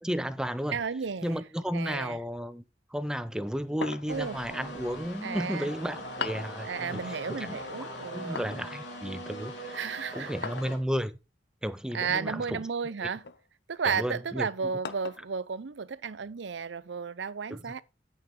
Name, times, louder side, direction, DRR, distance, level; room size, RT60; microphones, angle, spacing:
voice 1, 0.0-0.8 1.2-2.6 2.9-7.6 8.1-9.8 10.1-11.1 11.6-12.6 13.0-13.1 13.8-14.5 17.5-17.6, equal, 5° right, 0.6 m, -33 dB
voice 2, 0.7-1.4 1.7-2.2 4.1-4.4 5.2-5.7 6.6-8.4 9.7-10.3 11.9-13.2 13.7-17.8, right 6 dB, 85° right, 0.6 m, -33 dB
sound 1, 3.8-4.3 6.2-6.6 8.3-8.7 10.4-10.8 12.3-12.6 13.2-13.4 14.8-15.3, left 5 dB, 65° left, 0.7 m, -38 dB
sound 2, 4.1-10.8, equal, 85° left, 3.6 m, -41 dB
9.4 x 8.7 x 3.7 m
head